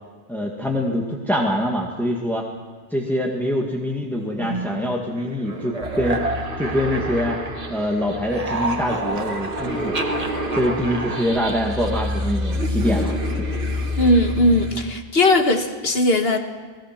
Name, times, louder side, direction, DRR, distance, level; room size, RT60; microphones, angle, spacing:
voice 1, 0.3-2.5 2.9-6.3 6.6-7.4 7.7-10.0 10.5-13.5, equal, ahead, -1 dB, 1.9 m, -24 dB
sound 1, 4.4-7.9 8.1-12.2, right 2 dB, 40° right, 1.5 m, -30 dB
sound 2, 5.8-14.8, left 1 dB, 60° right, 2.1 m, -28 dB
voice 2, 13.9-16.4, left 1 dB, 70° left, 5 dB, 1.9 m, -18 dB
27.0 x 19.5 x 6.0 m, 1.5 s
omnidirectional pair, 1.0 m